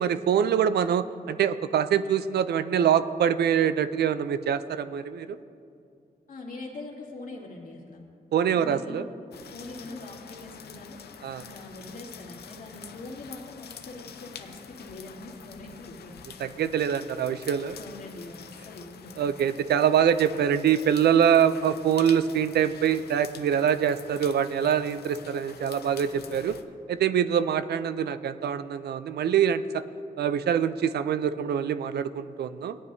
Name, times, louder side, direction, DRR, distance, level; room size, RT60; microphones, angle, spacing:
voice 1, 0.0-5.4 8.3-9.0 11.2-11.4 16.4-17.8 19.2-26.6 26.9-29.6 30.2-32.8, right 8 dB, 85° right, 13 dB, 0.4 m, -24 dB
voice 2, 6.3-8.0 8.5-9.1 9.5-11.0 11.4-16.2 17.7-19.1, left 2 dB, 55° left, -2 dB, 2.2 m, -42 dB
sound 1, 9.3-26.6, left 7 dB, 80° left, 0.6 m, -46 dB
17.5 x 10.5 x 2.7 m, 2.4 s
cardioid pair, 95°, 16 cm